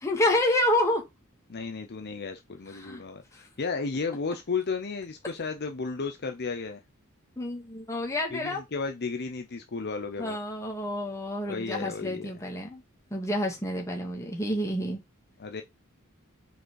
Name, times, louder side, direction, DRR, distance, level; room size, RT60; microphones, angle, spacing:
voice 1, 0.0-1.0 2.8-3.0 7.4-8.6 10.2-12.8 13.1-15.0, left 1 dB, 15° left, 1.9 m, -28 dB
voice 2, 1.5-6.8 8.3-10.4 11.5-12.4 15.4-15.6, left 4 dB, 50° left, 0.7 m, -33 dB
5.2 x 4.4 x 4.7 m
head